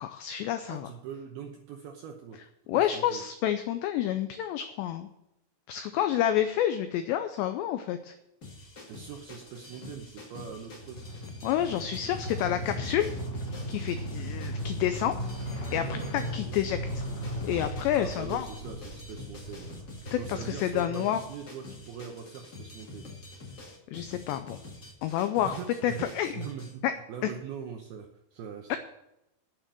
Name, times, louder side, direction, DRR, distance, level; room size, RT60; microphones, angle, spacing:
voice 1, 0.0-0.9 2.7-5.1 5.7-8.1 11.4-13.1 13.7-15.1 15.7-17.0 17.4-18.5 20.1-21.2 23.9-24.6 25.0-25.6 25.8-26.4 26.8-26.9 27.2-27.3 28.7-28.8, left 11 dB, 90° left, 9 dB, 2.4 m, -29 dB
voice 2, 0.7-2.4 2.7-3.2 8.9-11.0 16.4-16.5 17.9-23.1 25.4-26.8 27.1-28.8, right 7 dB, 80° right, 3 dB, 2.2 m, -42 dB
sound 1, 8.4-26.7, left 3 dB, 65° left, 0.9 m, -47 dB
sound 2, 10.8-20.8, right 1 dB, 40° left, 4.0 m, -37 dB
9.1 x 8.9 x 7.6 m, 0.86 s
omnidirectional pair, 5.8 m